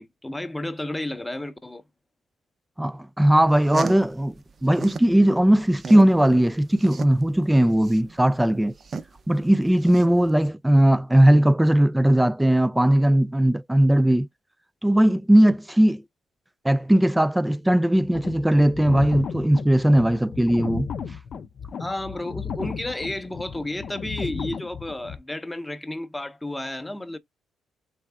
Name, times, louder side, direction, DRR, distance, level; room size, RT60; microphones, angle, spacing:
voice 1, 0.0-1.8 21.8-27.2, left 1 dB, 10° left, 0.7 m, -32 dB
voice 2, 2.8-4.3 4.6-8.7 9.3-14.3 14.8-16.0 16.6-20.9, right 1 dB, 5° right, 0.3 m, -19 dB
sound 1, 3.4-5.1 5.5-10.5, right 4 dB, 40° right, 0.7 m, -35 dB
sound 2, 18.0-25.2, left 6 dB, 55° left, 0.5 m, -34 dB
3.5 x 3.2 x 3.4 m
cardioid pair, 90°, 0 cm